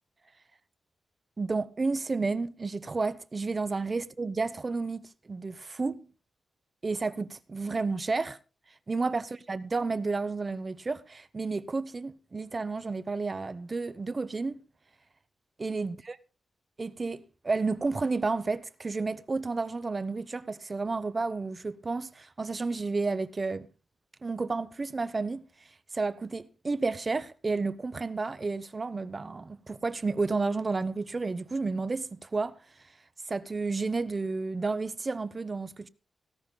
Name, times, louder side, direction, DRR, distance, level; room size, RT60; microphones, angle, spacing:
voice 1, 1.4-6.0 6.8-8.4 8.9-14.6 15.6-16.1 16.8-23.7 24.2-25.4 25.9-32.6 33.3-35.9, right 3 dB, 35° right, 0.8 m, -31 dB
17.5 x 16.5 x 2.2 m
cardioid pair, 85°, 0 cm